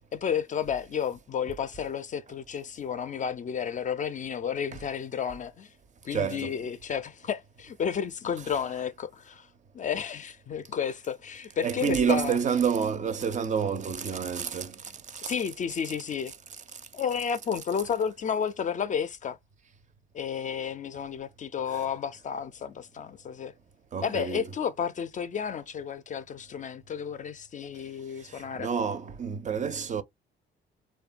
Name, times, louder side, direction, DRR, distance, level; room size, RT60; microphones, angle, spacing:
voice 1, 0.1-5.7 6.0-9.5 9.7-12.4 15.2-16.3 16.9-19.4 20.1-23.5 24.0-28.7, left 7 dB, 40° left, 0.4 m, -32 dB
voice 2, 6.1-6.6 8.4-8.6 11.6-15.3 16.3-16.8 21.7-21.9 23.9-24.5 28.3-30.0, right 7 dB, 40° right, 0.5 m, -29 dB
2.8 x 2.2 x 2.4 m
cardioid pair, 90°, 20 cm